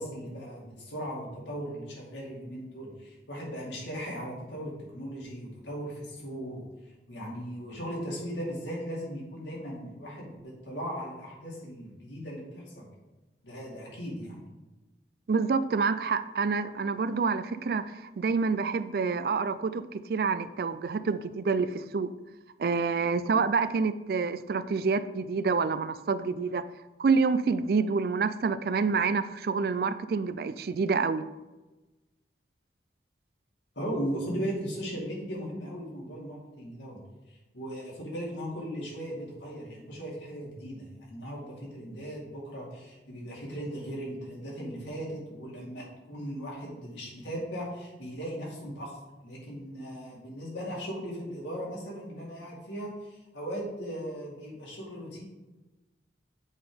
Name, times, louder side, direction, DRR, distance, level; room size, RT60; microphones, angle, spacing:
voice 1, 0.0-6.6 7.1-12.9 13.4-14.5 33.8-37.0 37.3-55.2, equal, 90° left, -3 dB, 2.4 m, -38 dB
voice 2, 15.3-22.1 22.6-26.7 27.0-31.2, right 4 dB, 55° right, 14 dB, 0.3 m, -27 dB
8.1 x 3.7 x 5.0 m, 1.1 s
head